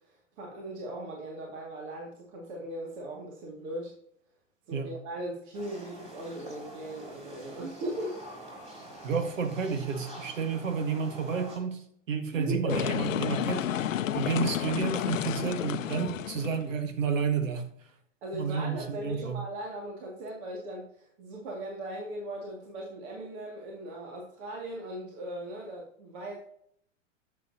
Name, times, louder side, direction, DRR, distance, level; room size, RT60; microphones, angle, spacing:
voice 1, 0.0-3.9 4.7-8.2 12.3-12.9 18.2-26.4, right 1 dB, 60° right, -1 dB, 2.3 m, -38 dB
sound 1, 5.5-11.6, right 1 dB, 15° right, 4.0 m, -46 dB
voice 2, 9.0-13.7 14.1-17.7 18.3-19.4, right 6 dB, 80° right, 7 dB, 1.6 m, -31 dB
sound 2, 12.7-16.7, left 10 dB, 90° left, 0.6 m, -31 dB
11.0 x 7.6 x 2.8 m, 0.68 s
hypercardioid pair, 110°, 38 cm